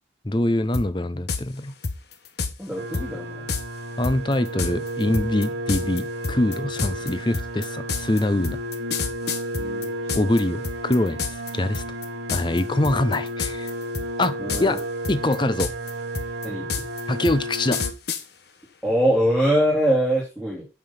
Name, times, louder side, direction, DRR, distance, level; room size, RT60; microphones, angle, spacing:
voice 1, 0.2-1.7 4.0-8.6 10.1-11.8 12.3-13.7 14.2-14.8 15.1-15.7 17.1-17.8, left 1 dB, 25° left, 0.7 m, -24 dB
sound 1, 0.7-0.9 1.3-1.4 1.8-2.5 2.9-3.1 3.5-3.6 4.0-10.4 10.6-11.5 11.7-12.0 12.3-12.6 12.8-13.7 13.9-14.8 15.0-18.2, left 5 dB, 60° left, 1.3 m, -28 dB
voice 2, 2.6-3.5 9.6-9.9 14.4-14.8 16.4-16.7 18.8-20.7, equal, ahead, 2.7 m, -23 dB
sound 2, 2.8-17.9, right 1 dB, 80° right, 1.5 m, -32 dB
8.4 x 5.9 x 5.8 m
head